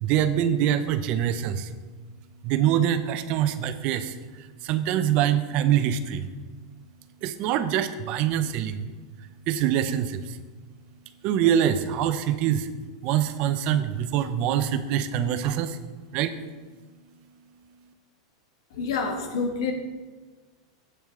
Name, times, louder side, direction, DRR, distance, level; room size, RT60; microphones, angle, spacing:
voice 1, 0.0-1.7 2.4-6.3 7.2-8.9 9.5-10.4 11.2-12.7 13.0-15.8 16.1-16.3, right 10 dB, 50° right, 11 dB, 0.6 m, -24 dB
voice 2, 18.7-19.7, left 4 dB, 75° left, 2 dB, 1.3 m, -28 dB
8.1 x 7.2 x 3.7 m, 1.4 s
hypercardioid pair, 115°, 3 cm